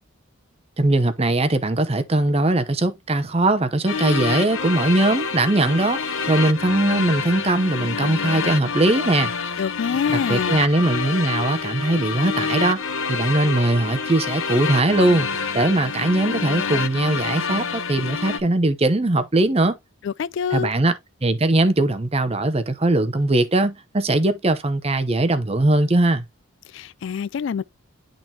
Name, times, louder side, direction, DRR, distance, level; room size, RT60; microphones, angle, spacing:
voice 1, 0.8-9.3 10.1-12.8 13.1-19.8 20.5-26.3, right 2 dB, 30° right, 0.7 m, -20 dB
sound 1, 3.9-18.4, left 5 dB, 75° left, 1.0 m, -27 dB
voice 2, 9.6-10.6 20.0-20.7 26.7-27.6, left 7 dB, 60° left, 0.3 m, -25 dB
11.0 x 3.8 x 2.8 m
head